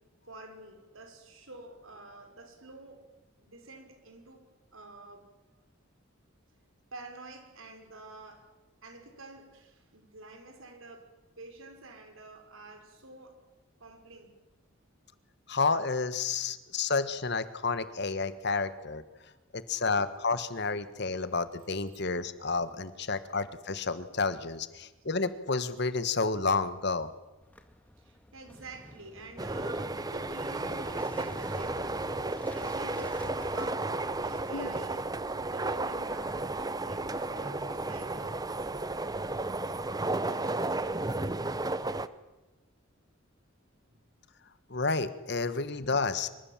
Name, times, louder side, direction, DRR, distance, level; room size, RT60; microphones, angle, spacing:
voice 1, 0.3-3.0 3.4-4.4 4.7-5.2 6.9-8.5 8.8-11.1 11.4-13.4 13.8-14.3 19.6-19.9 28.0-32.0 32.5-36.5 36.8-38.4 40.3-40.9 43.9-44.0, right 2 dB, 85° right, 5 dB, 5.6 m, -48 dB
voice 2, 15.5-19.0 19.5-27.1 34.5-34.7 44.7-46.4, left 4 dB, 55° left, 13 dB, 1.5 m, -30 dB
Motorcycle / Engine starting, 27.4-34.6, equal, 10° left, 2.0 m, -47 dB
sound 1, 29.4-42.1, right 2 dB, 20° right, 0.9 m, -33 dB
26.0 x 25.0 x 7.5 m, 1.1 s
head